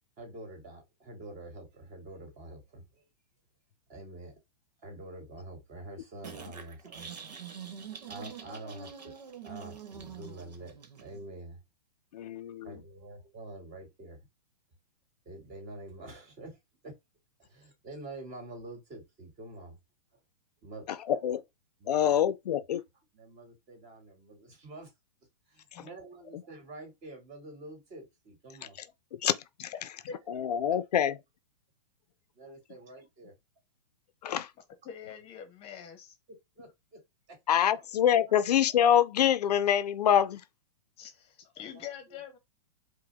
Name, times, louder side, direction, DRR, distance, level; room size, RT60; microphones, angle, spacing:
voice 1, 0.2-3.1 3.9-4.3 4.8-7.4 7.9-9.2 9.4-11.6 12.6-14.3 15.3-16.6 16.8-17.0 17.4-19.8 20.6-21.2 21.8-22.8 23.1-24.9 25.5-28.8 30.6-30.8 32.3-33.3 36.6-37.0 37.3-37.4 37.7-37.8 38.2-38.3 41.7-42.2, right 2 dB, 35° right, 2.4 m, -47 dB
sound 1, 6.2-11.2, right 7 dB, 85° right, 1.0 m, -45 dB
voice 2, 12.1-12.7 21.1-21.4 21.9-22.8 29.2-29.3 30.3-31.2 34.2-34.5 37.5-40.4, left 10 dB, 75° left, 0.5 m, -25 dB
voice 3, 34.8-36.1 41.0-42.4, left 8 dB, 30° left, 0.8 m, -44 dB
4.9 x 2.2 x 3.5 m
hypercardioid pair, 130°, 20 cm